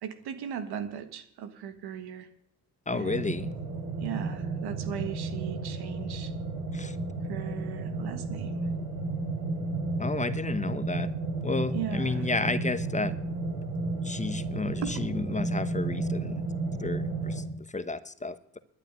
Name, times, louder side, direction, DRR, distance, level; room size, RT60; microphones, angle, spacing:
voice 1, 0.0-2.3 2.9-3.6 4.0-6.3 7.3-8.5 11.7-12.3 14.8-15.0, right 9 dB, 80° right, 10 dB, 1.6 m, -38 dB
voice 2, 2.9-3.5 6.7-6.9 10.0-11.1 11.4-13.1 14.0-16.4 16.8-17.3 17.7-18.6, left 3 dB, 20° left, 12 dB, 1.1 m, -32 dB
sound 1, 3.0-17.4, right 2 dB, 45° right, 7.7 m, -32 dB
11.5 x 7.1 x 9.8 m, 0.67 s
supercardioid pair, 65°, 38 cm